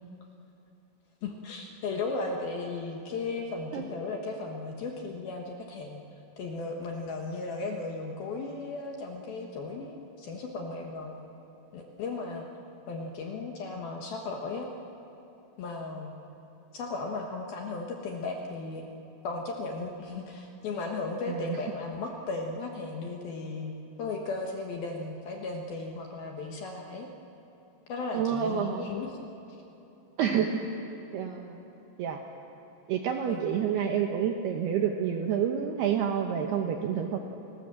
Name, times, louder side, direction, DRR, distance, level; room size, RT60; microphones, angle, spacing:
voice 1, 1.2-6.0 6.4-11.2 11.7-12.5 12.9-14.7 15.6-16.1 16.7-18.8 19.2-23.7 24.0-27.1 27.9-29.2 30.2-30.5 33.3-33.5, left 3 dB, 65° left, 1 dB, 2.5 m, -36 dB
voice 2, 21.3-21.6 28.1-28.8 30.2-30.5 31.1-31.6 32.0-32.2 32.9-37.2, right 8 dB, 75° right, 3 dB, 2.4 m, -28 dB
30.0 x 19.5 x 7.6 m, 2.9 s
omnidirectional pair, 5.9 m